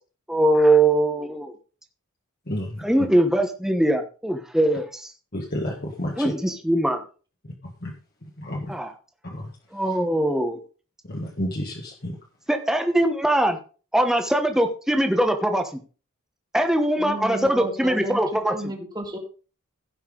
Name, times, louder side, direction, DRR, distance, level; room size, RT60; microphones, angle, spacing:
voice 1, 0.3-1.5 2.8-5.1 6.2-7.0 8.7-8.9 9.7-10.6 12.5-13.6 13.9-15.8 16.5-18.5, right 1 dB, ahead, 5 dB, 1.1 m, -21 dB
voice 2, 2.5-2.8 5.3-6.3 7.8-7.9 8.4-8.7 9.3-9.5 11.1-12.2, left 1 dB, 45° left, -1 dB, 1.6 m, -30 dB
voice 3, 17.0-19.2, right 1 dB, 20° right, 2 dB, 2.1 m, -33 dB
16.5 x 5.7 x 3.8 m, 0.37 s
head